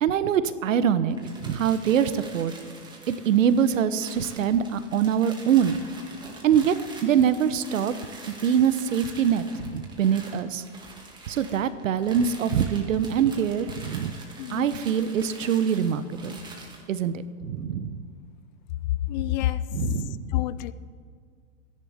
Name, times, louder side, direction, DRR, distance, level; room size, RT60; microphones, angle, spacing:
voice 1, 0.0-2.5 3.1-5.8 6.4-6.7 7.0-7.9 8.3-10.6 11.3-14.1 14.5-16.4 16.9-18.1 19.7-20.3, right 8 dB, 80° right, 13 dB, 1.1 m, -24 dB
sound 1, 1.1-16.9, right 2 dB, 10° right, 2.2 m, -45 dB
voice 2, 14.4-14.8 19.1-19.7 20.3-20.7, left 13 dB, 35° left, 16 dB, 0.4 m, -27 dB
26.0 x 11.0 x 3.6 m, 2.1 s
hypercardioid pair, 130°, 38 cm